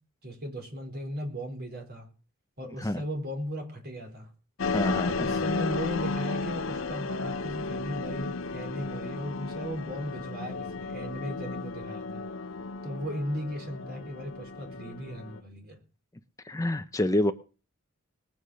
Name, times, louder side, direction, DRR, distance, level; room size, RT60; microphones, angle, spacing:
voice 1, 0.2-2.1 2.6-4.3 5.1-12.2 12.8-15.8, equal, 50° right, 4.5 m, -37 dB
sound 1, 4.6-15.4, left 3 dB, 70° left, 0.9 m, -33 dB
voice 2, 4.7-5.4 16.4-17.3, left 1 dB, 15° left, 0.7 m, -27 dB
20.0 x 8.8 x 6.4 m
head